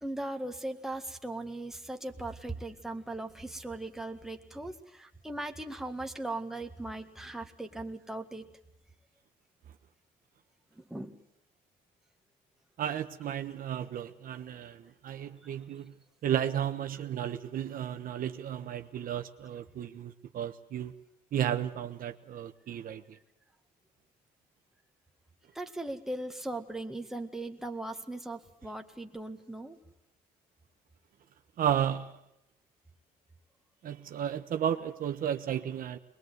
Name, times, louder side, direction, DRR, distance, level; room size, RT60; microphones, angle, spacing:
voice 1, 0.0-8.5 10.8-11.2 25.5-29.8, right 2 dB, ahead, 1.8 m, -39 dB
voice 2, 12.8-15.9 16.2-20.9 21.3-23.2 31.6-32.2 33.8-36.0, right 9 dB, 55° right, 1.2 m, -33 dB
22.0 x 21.5 x 8.1 m
cardioid pair, 110°, 17 cm